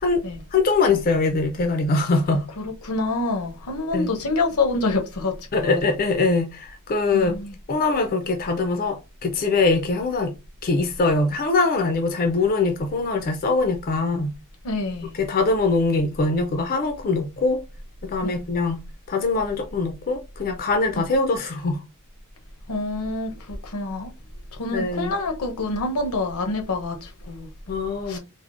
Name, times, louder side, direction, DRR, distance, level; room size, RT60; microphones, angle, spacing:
voice 1, 0.5-2.5 3.9-4.1 5.5-7.3 7.7-10.3 10.6-14.3 15.2-17.6 18.0-18.8 19.1-21.8 24.7-25.1 27.7-28.2, left 3 dB, 40° left, 0.4 m, -22 dB
voice 2, 2.8-5.9 7.1-7.5 14.6-15.1 18.2-18.4 20.9-21.0 22.7-24.1 24.6-27.5 28.1-28.2, left 3 dB, 85° left, 0.7 m, -27 dB
3.4 x 2.1 x 2.4 m
head